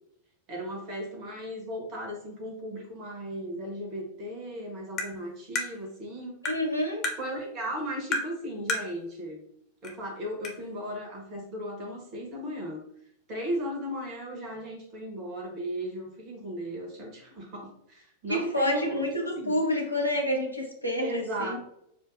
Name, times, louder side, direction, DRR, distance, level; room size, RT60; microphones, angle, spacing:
voice 1, 0.5-6.4 7.2-9.4 9.8-12.8 13.3-19.6 21.0-21.7, equal, 35° right, 1 dB, 1.3 m, -36 dB
Tap, 5.0-5.1 5.6-5.7 6.4-6.6 7.0-7.2 8.1-8.3 8.7-8.9 9.8-9.9 10.4-10.5, left 2 dB, 35° left, 0.9 m, -29 dB
voice 2, 6.4-7.0 18.3-21.6, left 1 dB, 90° right, 1 dB, 0.9 m, -28 dB
6.6 x 2.2 x 2.6 m, 0.73 s
figure-of-eight pair, 90°, 0 cm